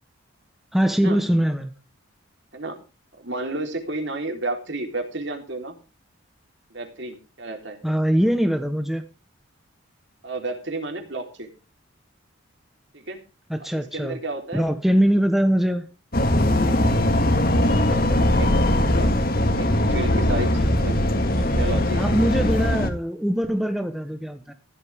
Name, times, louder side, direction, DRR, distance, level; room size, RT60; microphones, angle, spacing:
voice 1, 0.7-1.7 7.8-9.1 13.5-14.2 14.5-15.9 20.5-20.6 22.0-24.5, equal, ahead, 1.0 m, -22 dB
voice 2, 3.2-5.8 6.7-7.8 10.2-11.5 12.9-13.2 13.7-14.6 17.5-19.1 19.6-20.5 20.8-21.0 21.4-22.0, right 2 dB, 60° right, 3.7 m, -32 dB
sound 1, 16.1-22.9, left 1 dB, 45° left, 2.1 m, -20 dB
15.5 x 11.5 x 3.6 m
head